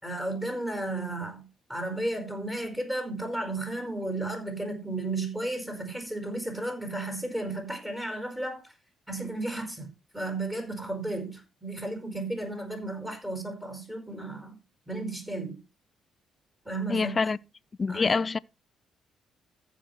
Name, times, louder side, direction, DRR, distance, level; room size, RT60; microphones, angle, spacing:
voice 1, 0.0-8.7 9.1-14.6 14.9-15.6 16.6-17.1 17.9-18.2, right 2 dB, 10° right, 5.1 m, -34 dB
voice 2, 16.9-17.4 17.8-18.4, left 4 dB, 35° left, 0.5 m, -25 dB
14.5 x 5.7 x 4.5 m
cardioid pair, 90°, 0 cm